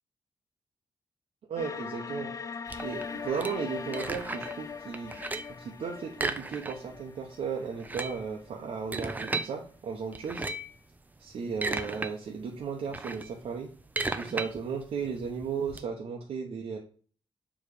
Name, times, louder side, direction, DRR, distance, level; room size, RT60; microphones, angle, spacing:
voice 1, 1.5-2.3 2.8-5.1 5.6-10.4 11.2-13.7 14.2-16.8, right 6 dB, 75° right, -1 dB, 1.0 m, -35 dB
sound 1, 1.6-8.5, left 5 dB, 35° left, 0.5 m, -41 dB
sound 2, 2.7-4.6 4.9-5.6 6.1-7.0 7.3-7.4 7.7-9.5 10.1-10.8 11.3-12.1 12.5-15.8, right 3 dB, 15° right, 0.5 m, -35 dB
7.1 x 3.3 x 4.9 m, 0.42 s
wide cardioid pair, 155°, 10 cm